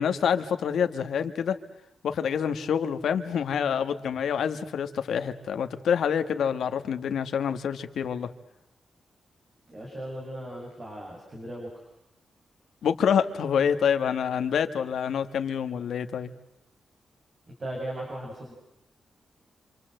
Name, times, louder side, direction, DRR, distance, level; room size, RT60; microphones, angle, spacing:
voice 1, 0.0-1.6 2.0-8.3 12.8-16.3, left 7 dB, 85° left, 8 dB, 1.7 m, -27 dB
voice 2, 9.7-11.8 17.6-18.5, right 1 dB, 35° right, -2 dB, 7.4 m, -37 dB
27.0 x 27.0 x 7.9 m, 0.81 s
wide cardioid pair, 160°, 0 cm